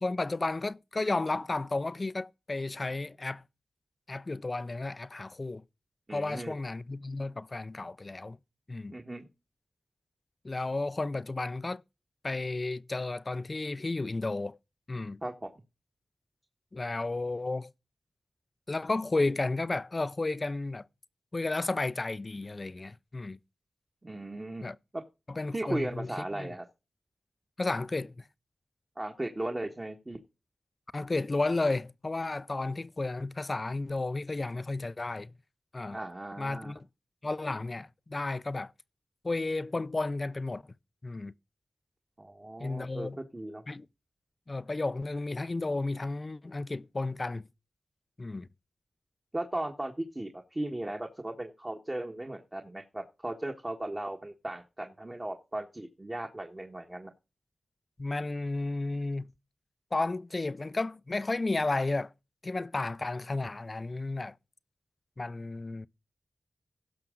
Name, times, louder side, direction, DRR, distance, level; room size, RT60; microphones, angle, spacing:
voice 1, 0.0-3.4 4.1-5.6 6.1-8.4 8.7-9.0 10.4-11.8 12.2-14.6 14.9-15.2 16.7-17.7 18.7-20.8 21.3-23.4 24.6-24.8 25.3-26.1 26.3-26.5 27.6-28.2 30.9-35.3 35.7-36.0 36.4-36.9 37.2-38.7 39.2-40.6 41.0-41.3 42.6-43.2 43.7-43.9 44.5-47.5 48.2-48.5 58.0-59.3 59.9-62.1 62.4-64.4 65.2-65.9, left 2 dB, 40° left, 0.5 m, -32 dB
voice 2, 6.1-6.5 8.9-9.3 15.2-15.5 24.0-24.6 24.9-25.0 25.5-26.6 29.0-30.2 35.9-36.7 42.2-43.6 49.3-57.1, right 1 dB, 25° right, 1.4 m, -37 dB
16.5 x 6.0 x 3.7 m
cardioid pair, 55°, 0 cm